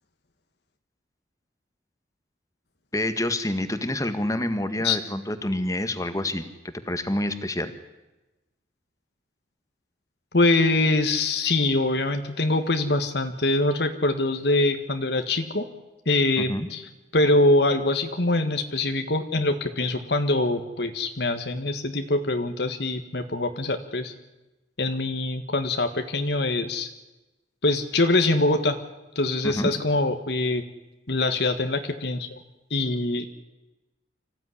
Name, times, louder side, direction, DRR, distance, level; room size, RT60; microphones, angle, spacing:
voice 1, 2.9-6.4 6.9-7.7 16.4-16.7 29.4-29.7, left 1 dB, 20° left, 10 dB, 1.7 m, -27 dB
voice 2, 10.3-15.6 16.0-16.8 17.1-24.1 24.8-26.9 27.6-28.8 29.1-30.6 31.1-32.4 32.7-33.3, left 2 dB, 65° left, 7 dB, 1.6 m, -24 dB
25.5 x 15.5 x 9.9 m, 1.0 s
head